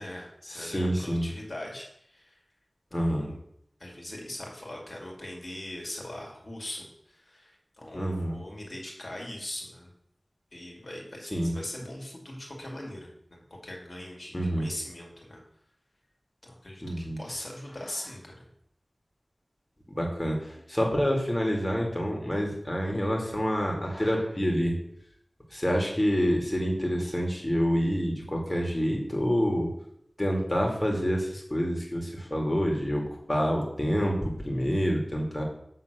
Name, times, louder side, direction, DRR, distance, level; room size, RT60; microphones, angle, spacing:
voice 1, 0.0-2.4 2.9-3.3 3.8-9.9 10.5-15.4 16.4-18.5, left 1 dB, 60° left, -1 dB, 2.4 m, -41 dB
voice 2, 0.5-1.3 2.9-3.3 7.9-8.4 11.3-11.6 14.3-14.7 16.8-17.2 19.9-24.8 25.5-29.7 30.2-35.4, equal, 25° left, -1 dB, 2.3 m, -27 dB
7.8 x 3.8 x 6.7 m, 0.72 s
wide cardioid pair, 55°, 0 cm